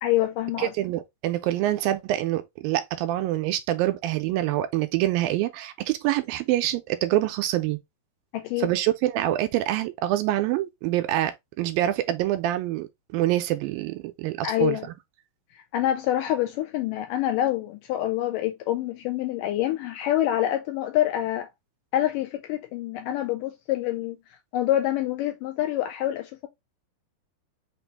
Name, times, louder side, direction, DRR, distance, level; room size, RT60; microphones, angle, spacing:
voice 1, 0.0-0.7 8.3-8.7 14.4-14.9 15.7-21.5 21.9-24.2 24.5-26.5, left 13 dB, 80° left, 2.0 m, -26 dB
voice 2, 0.6-7.8 8.6-14.8, right 14 dB, 85° right, 2.3 m, -26 dB
5.9 x 2.6 x 3.4 m
omnidirectional pair, 4.3 m